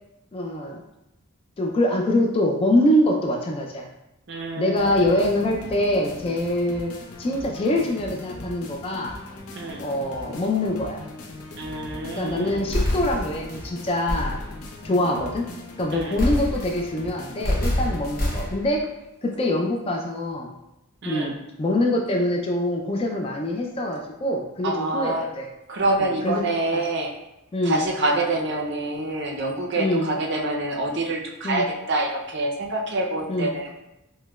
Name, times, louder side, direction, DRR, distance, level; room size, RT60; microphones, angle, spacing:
voice 1, 0.3-0.8 1.6-3.9 4.6-6.9 7.2-9.1 9.8-11.0 12.2-14.4 14.8-15.5 15.8-18.8 19.2-20.5 21.0-25.5 26.2-26.4 26.7-26.8 27.5-27.8 29.8-30.1 31.4-31.6 33.3-33.5, left 1 dB, 25° left, 1 dB, 0.3 m, -24 dB
voice 2, 4.3-5.2 9.5-9.8 11.5-12.7 15.9-16.2 21.0-21.4 24.6-25.3 25.7-27.1 27.6-33.8, right 2 dB, 50° right, 0 dB, 0.5 m, -26 dB
sound 1, 4.8-18.5, left 2 dB, 80° left, 0.5 m, -40 dB
sound 2, 12.7-13.6 14.1-14.6 16.2-16.9 17.4-18.7, left 1 dB, 40° left, 0.9 m, -26 dB
4.8 x 2.1 x 2.2 m, 0.90 s
head